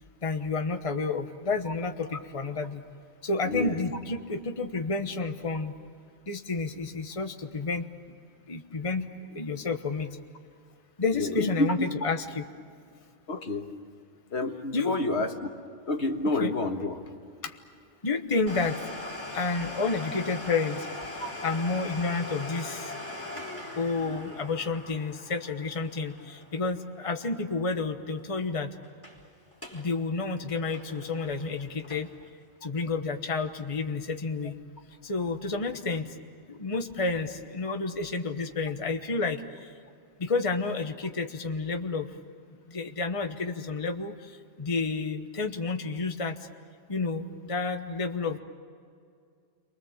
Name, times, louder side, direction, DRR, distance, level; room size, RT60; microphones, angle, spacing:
voice 1, 0.2-2.8 3.2-5.7 6.3-7.9 8.5-10.2 11.0-12.5 14.7-15.3 16.4-16.6 17.4-17.6 18.0-18.8 19.3-20.9 21.4-22.9 23.7-28.7 29.7-32.1 32.6-34.6 35.0-36.1 36.5-39.7 40.2-42.1 42.7-46.4 46.9-48.4, left 3 dB, 30° left, 6 dB, 1.2 m, -30 dB
voice 2, 11.1-11.9 13.3-13.7 14.3-15.3 15.9-17.1 21.2-21.3, left 2 dB, 75° left, 5 dB, 1.8 m, -29 dB
Domestic sounds home sounds, 18.5-27.9 28.2-28.3 28.8-29.2 29.5-29.9 30.2-32.3 32.8-32.9 33.5-33.6, left 2 dB, 10° left, 3.9 m, -41 dB
30.0 x 24.0 x 7.3 m, 2.3 s
omnidirectional pair, 1.1 m